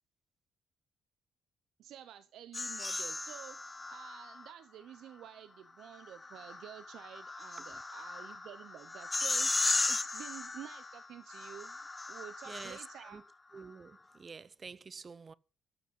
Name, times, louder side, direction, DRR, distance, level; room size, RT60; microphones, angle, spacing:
voice 1, 1.8-11.8 12.1-13.2, right 11 dB, 80° right, 0.7 m, -50 dB
sound 1, 2.5-4.5 5.9-13.1, left 3 dB, 20° left, 0.6 m, -36 dB
voice 2, 12.5-12.8 13.1-13.2 13.5-15.3, right 5 dB, 35° right, 0.6 m, -48 dB
13.5 x 6.2 x 5.3 m
cardioid pair, 90°, 0 cm